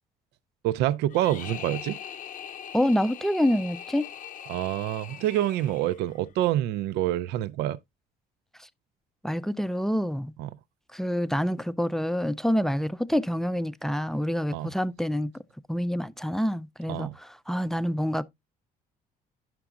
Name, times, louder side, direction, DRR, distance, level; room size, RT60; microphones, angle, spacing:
voice 1, 0.6-2.0 4.5-7.8 10.4-10.5 14.5-14.7 16.9-17.2, right 13 dB, 85° right, 0.4 m, -27 dB
sound 1, 1.1-6.2, left 9 dB, 50° left, 0.6 m, -41 dB
voice 2, 2.7-4.1 9.2-10.3 10.9-15.3 15.7-18.2, equal, ahead, 0.3 m, -27 dB
11.0 x 5.8 x 2.4 m
cardioid pair, 110°, 17 cm